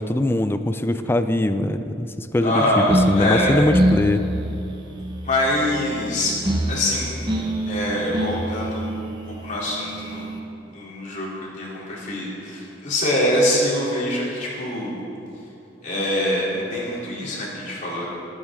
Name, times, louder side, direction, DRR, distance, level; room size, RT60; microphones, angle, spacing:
voice 1, 0.0-4.2, left 1 dB, 10° left, 10 dB, 0.4 m, -22 dB
voice 2, 2.4-3.6 5.2-6.3 6.7-7.3 7.6-8.9 9.3-10.3 10.7-11.3 11.6-15.0 15.8-18.1, left 1 dB, 40° left, -5 dB, 3.1 m, -24 dB
sound 1, 2.9-10.4, equal, 25° right, 1.1 m, -26 dB
19.5 x 8.9 x 3.7 m, 2.8 s
head